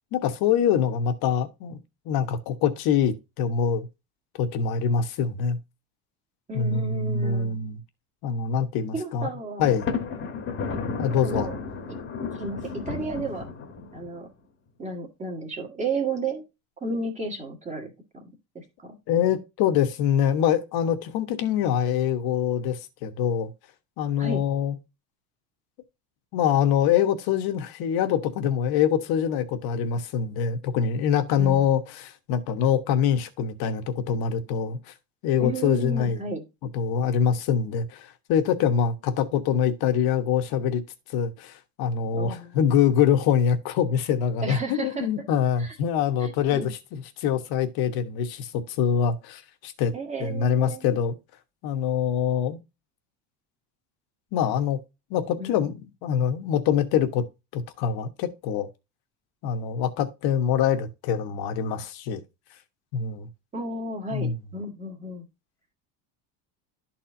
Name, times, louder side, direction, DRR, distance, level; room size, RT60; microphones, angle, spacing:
voice 1, 0.1-1.8 2.0-3.9 4.4-5.6 6.5-7.8 8.2-9.3 9.6-9.9 11.0-11.5 19.1-23.5 24.0-24.7 26.3-34.9 35.2-36.2 36.7-40.8 41.1-46.6 46.9-49.9 50.2-51.1 51.6-52.6 54.3-54.8 55.1-57.2 57.5-58.7 59.4-62.2 62.9-63.3 64.1-64.4, left 8 dB, 60° left, 1.2 m, -24 dB
voice 2, 6.5-7.6 8.9-9.8 10.7-10.8 11.2-11.6 11.9-12.0 12.3-13.5 13.9-14.3 14.8-16.4 16.8-18.2 18.6-19.0 24.2-24.4 31.4-31.7 35.4-36.4 42.1-42.8 44.4-45.1 45.6-45.8 46.2-46.7 49.9-51.0 55.4-55.8 63.5-65.2, right 2 dB, 15° right, 1.7 m, -33 dB
Thunder, 9.6-14.2, left 5 dB, 25° left, 1.3 m, -33 dB
12.0 x 4.3 x 2.7 m
cardioid pair, 160°, 43 cm